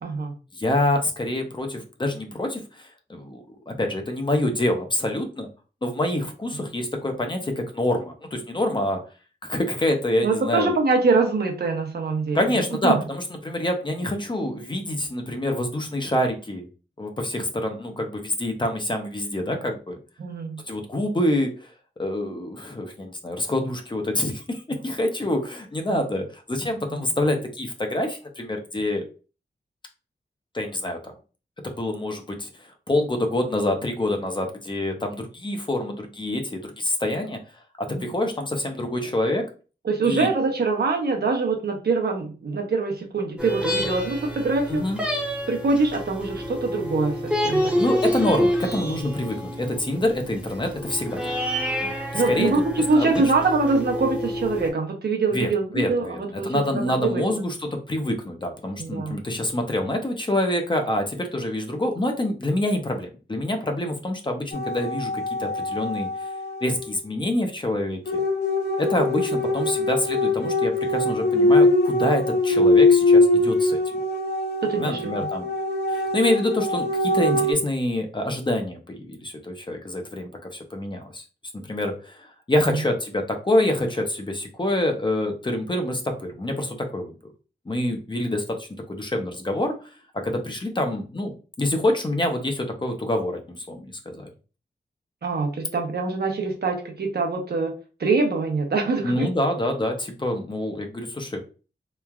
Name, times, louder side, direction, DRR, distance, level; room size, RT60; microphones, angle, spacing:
voice 1, 0.0-0.3 10.2-12.4 12.8-13.0 20.2-20.6 25.9-26.0 26.9-27.1 37.9-38.2 39.8-44.8 45.5-47.8 52.1-57.2 58.8-59.2 74.6-75.3 82.7-82.8 95.2-97.7 98.0-99.3, right 3 dB, 65° right, 2 dB, 0.7 m, -24 dB
voice 2, 0.5-5.5 5.8-9.0 9.4-10.7 12.3-16.7 17.0-20.0 20.7-21.7 22.0-29.0 30.5-31.1 31.6-32.5 32.9-37.4 37.8-39.5 40.0-40.3 44.7-45.0 47.8-51.2 51.8-52.5 52.9-53.1 55.3-66.1 66.6-68.2 68.8-73.8 74.8-75.5 75.9-81.2 81.5-87.1 87.7-89.7 90.1-94.3 99.0-101.4, left 1 dB, 25° left, 4 dB, 0.6 m, -26 dB
sound 1, 43.4-54.7, equal, 5° right, 0.8 m, -28 dB
sound 2, 64.5-66.9 68.1-77.5, left 2 dB, 70° left, 0.6 m, -22 dB
3.1 x 2.3 x 2.3 m, 0.35 s
wide cardioid pair, 95°, 18 cm